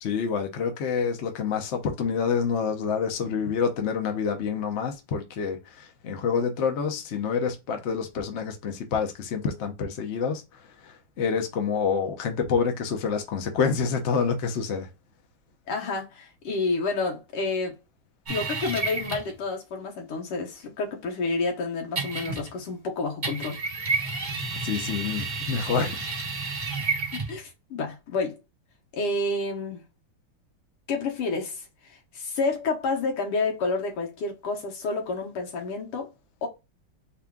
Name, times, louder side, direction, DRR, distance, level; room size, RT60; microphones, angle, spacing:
voice 1, 0.0-10.4 10.8-14.9 24.5-26.0, left 6 dB, 65° left, 0.7 m, -27 dB
voice 2, 15.7-17.8 18.3-23.6 27.1-28.4 28.9-29.8 30.9-36.1 36.4-36.5, left 3 dB, 90° left, 2.0 m, -29 dB
sound 1, 18.3-19.4 22.0-22.7 23.2-27.4, right 4 dB, 45° right, 0.5 m, -30 dB
4.3 x 2.3 x 3.6 m
omnidirectional pair, 2.4 m